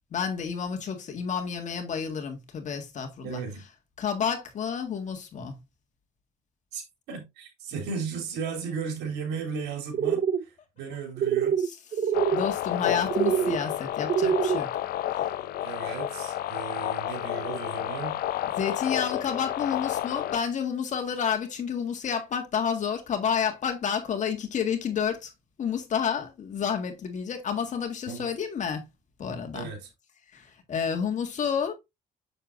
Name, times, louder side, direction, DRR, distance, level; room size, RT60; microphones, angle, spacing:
voice 1, 0.1-3.4 4.0-5.6 11.6-11.7 12.3-14.7 18.6-25.3 25.6-28.8 29.2-29.7 30.3-31.7, left 7 dB, 45° left, 1.8 m, -30 dB
voice 2, 3.2-3.6 6.7-11.6 12.8-13.5 15.6-18.1 28.1-28.3 29.5-29.9, right 5 dB, 85° right, 3.0 m, -36 dB
sound 1, 9.9-10.4 11.2-11.7 11.9-12.4 13.1-13.6 14.1-14.6, right 8 dB, 45° right, 0.7 m, -24 dB
sound 2, 12.1-20.4, left 13 dB, 65° left, 0.6 m, -31 dB
7.2 x 6.8 x 2.6 m
cardioid pair, 110°, 17 cm